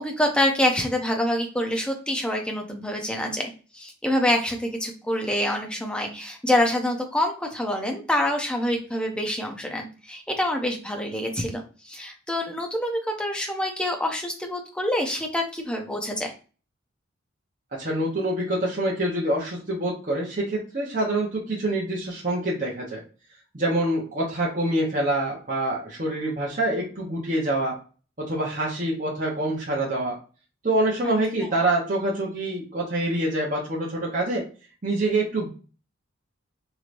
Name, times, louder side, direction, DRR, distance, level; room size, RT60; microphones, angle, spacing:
voice 1, 0.0-16.3 31.0-31.1 31.5-31.6, left 1 dB, 5° left, 2 dB, 0.5 m, -26 dB
voice 2, 17.7-23.0 23.5-27.7 28.2-30.2 30.6-34.4 34.8-35.5, right 1 dB, 40° right, -4 dB, 0.8 m, -26 dB
3.1 x 3.0 x 2.5 m, 0.37 s
head